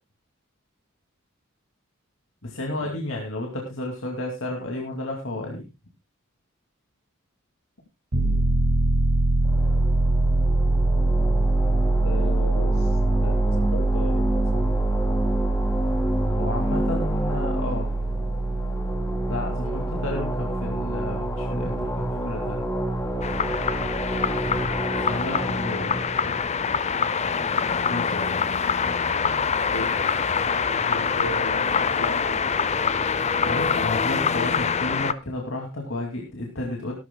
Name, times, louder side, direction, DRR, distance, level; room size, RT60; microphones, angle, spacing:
voice 1, 2.4-5.7 16.3-17.9 19.3-22.7 25.0-26.3 27.7-28.7 33.4-36.9, left 2 dB, 65° left, 0 dB, 2.5 m, -32 dB
Piano, 8.1-24.8, right 2 dB, 55° right, 2.2 m, -24 dB
voice 2, 8.2-8.5 12.0-14.7 29.7-30.0 30.7-32.4 32.7-33.0, left 1 dB, 85° left, -1 dB, 5.9 m, -37 dB
sound 1, 9.4-27.6, equal, 15° left, 2.7 m, -30 dB
sound 2, 23.2-35.1, left 6 dB, 30° left, 0.6 m, -25 dB
17.5 x 13.0 x 2.3 m, 0.25 s
head